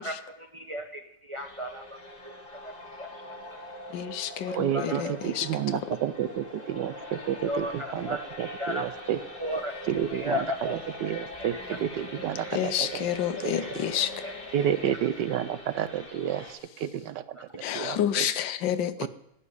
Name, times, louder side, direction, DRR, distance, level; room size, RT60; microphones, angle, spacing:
voice 1, 0.0-2.0 2.2-2.3 2.6-2.7 3.0-3.1 4.4-5.2 7.4-8.2 8.6-8.9 9.4-9.7 10.1-10.7 11.7-11.8 14.2-14.3 14.8-15.0, left 1 dB, 25° right, 4 dB, 0.8 m, -34 dB
sound 1, 1.3-16.5, left 1 dB, 30° left, 2.8 m, -42 dB
voice 2, 3.9-5.5 12.5-14.1 17.6-19.1, left 10 dB, 80° left, 12 dB, 1.5 m, -29 dB
voice 3, 4.6-9.2 9.9-13.8 14.5-17.5 17.7-18.3 19.0-19.1, right 10 dB, 75° right, 13 dB, 1.2 m, -31 dB
16.5 x 6.0 x 9.4 m, 0.80 s
omnidirectional pair, 2.0 m